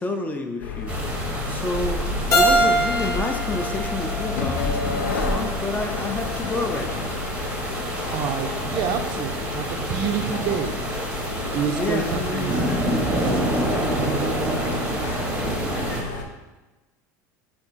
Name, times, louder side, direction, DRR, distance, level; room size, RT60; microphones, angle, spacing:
voice 1, 0.0-7.2 11.3-12.9, left 3 dB, 15° left, 4 dB, 0.4 m, -30 dB
sound 1, 0.6-16.2, left 4 dB, 85° left, 0.5 m, -31 dB
sound 2, 0.9-16.0, right 1 dB, 10° right, 0.7 m, -28 dB
Keyboard (musical), 2.3-5.1, right 1 dB, 35° left, 0.8 m, -23 dB
voice 2, 8.1-10.8 11.5-12.6 14.0-14.1, right 7 dB, 55° right, 6 dB, 0.4 m, -28 dB
3.5 x 2.4 x 3.9 m, 1.1 s
hypercardioid pair, 90°, 10 cm